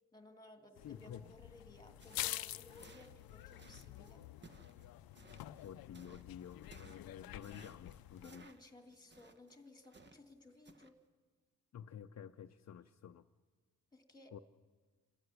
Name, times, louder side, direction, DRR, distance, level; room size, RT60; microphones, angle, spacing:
voice 1, 0.1-4.3 8.2-11.0 13.9-14.4, left 2 dB, 10° left, 6 dB, 2.3 m, -59 dB
sound 1, 0.8-8.3, left 14 dB, 85° left, 0.6 m, -48 dB
voice 2, 0.8-1.3 5.6-8.5 11.7-13.2 14.3-14.4, left 9 dB, 50° left, 6 dB, 0.7 m, -51 dB
sound 2, 2.0-10.3 10.7-10.9, right 3 dB, 30° right, 1.3 m, -61 dB
27.0 x 13.0 x 9.8 m, 1.4 s
cardioid pair, 100°, 34 cm